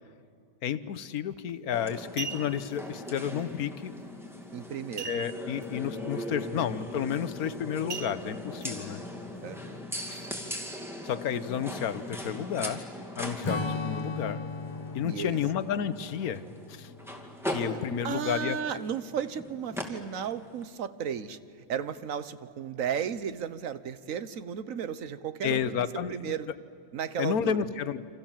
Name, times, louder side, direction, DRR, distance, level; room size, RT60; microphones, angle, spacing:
voice 1, 0.6-3.9 5.0-9.0 10.1-10.3 11.0-12.8 13.2-14.4 14.9-16.9 17.4-18.6 25.4-26.3 27.2-28.0, left 8 dB, 85° left, 13 dB, 1.4 m, -31 dB
sound 1, 1.3-1.5 2.0-2.8 5.0-5.6 6.0-6.1 6.5-6.8 7.9-8.7 9.3-9.4, right 6 dB, 50° right, 1.1 m, -39 dB
sound 2, 1.7-20.6, left 1 dB, ahead, 2.5 m, -40 dB
voice 2, 4.5-5.1 9.4-9.7 15.0-15.4 17.7-21.4 21.7-26.5 26.9-27.7, right 8 dB, 65° right, 13 dB, 1.4 m, -34 dB
Strum, 13.4-18.1, left 3 dB, 25° left, 0.8 m, -37 dB
29.0 x 26.5 x 7.4 m, 2.3 s
omnidirectional pair, 1.5 m